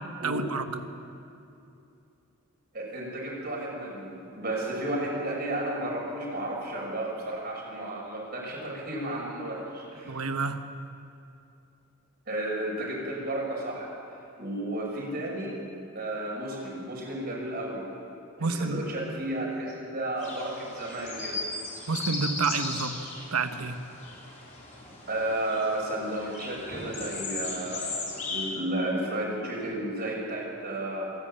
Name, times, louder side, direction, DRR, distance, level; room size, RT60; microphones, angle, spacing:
voice 1, 0.2-0.7 10.1-10.6 18.4-18.8 21.9-22.9 23.3-23.8, right 4 dB, 90° right, 8 dB, 1.3 m, -29 dB
voice 2, 2.7-10.3 12.3-13.9 14.4-15.6 15.9-17.8 18.4-21.4 25.1-31.1, right 1 dB, 45° right, -3 dB, 6.3 m, -33 dB
sound 1, 20.2-28.5, left 3 dB, 35° left, 4.0 m, -37 dB
26.5 x 11.5 x 8.8 m, 2.6 s
head